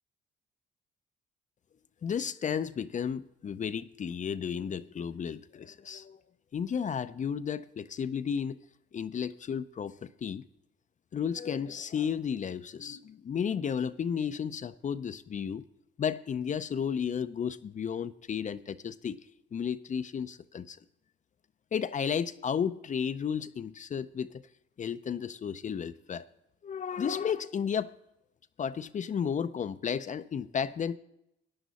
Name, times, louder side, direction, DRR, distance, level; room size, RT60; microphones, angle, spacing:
voice 1, 2.0-6.2 6.5-8.6 8.9-10.4 11.1-15.6 16.0-19.2 19.5-20.8 21.7-24.4 24.8-26.2 26.6-27.9 28.6-31.0, left 7 dB, 40° left, 13 dB, 0.5 m, -33 dB
14.0 x 10.0 x 4.1 m, 0.85 s
cardioid pair, 90°, 20 cm